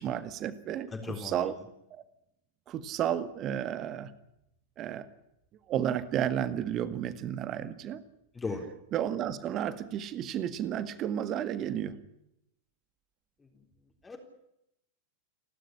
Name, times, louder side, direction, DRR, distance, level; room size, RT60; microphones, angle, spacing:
voice 1, 0.0-1.5 1.9-2.0 2.7-4.1 4.8-5.1 5.7-8.0 8.9-11.9, right 10 dB, 35° right, 13 dB, 1.8 m, -32 dB
voice 2, 0.9-1.5 8.3-8.6 13.4-13.5 14.0-14.2, left 4 dB, 15° left, 3 dB, 3.9 m, -37 dB
30.0 x 12.5 x 10.0 m, 0.82 s
figure-of-eight pair, 90°, 0 cm